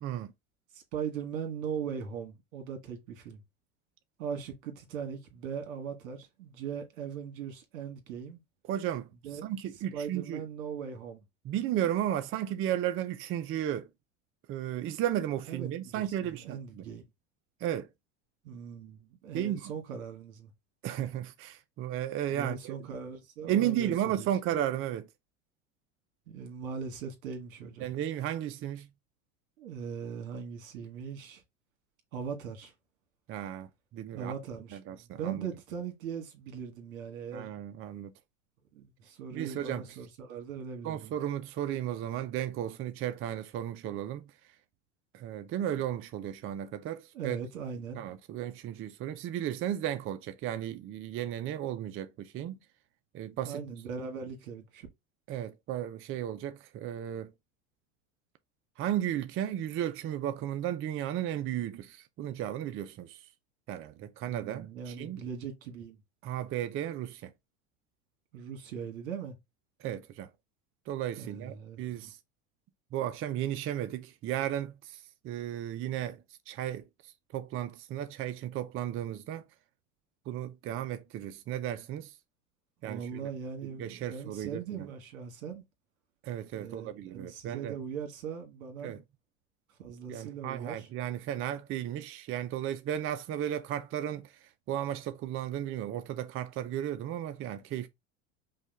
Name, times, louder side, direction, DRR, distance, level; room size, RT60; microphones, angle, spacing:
voice 1, 0.0-0.3 8.7-9.1 9.4-10.4 11.4-13.9 14.5-16.8 17.6-17.9 19.3-19.7 20.8-22.7 23.5-25.1 27.8-28.9 33.3-33.7 33.9-34.3 34.7-35.5 37.3-38.1 39.3-39.8 40.8-44.3 45.1-47.4 47.9-52.6 53.1-53.6 55.3-57.3 58.8-63.2 63.7-65.2 66.2-67.3 69.8-70.3 70.9-72.2 72.9-76.2 76.5-76.8 77.3-79.4 80.3-82.1 82.8-83.2 83.8-84.9 86.2-87.8 88.8-89.0 90.1-94.3 94.7-97.9, right 11 dB, 35° right, 0.5 m, -34 dB
voice 2, 0.7-3.4 4.2-8.4 9.2-9.5 9.9-11.2 15.5-17.0 18.4-20.5 22.3-24.3 24.5-24.6 26.3-27.9 29.6-31.4 32.1-32.7 34.1-37.5 38.7-41.1 47.1-48.0 53.4-54.9 64.3-66.0 68.3-69.4 71.2-72.1 82.8-85.6 86.5-89.0 89.8-90.9, right 7 dB, 80° right, 1.8 m, -40 dB
5.4 x 2.3 x 3.3 m
supercardioid pair, 110°, 40 cm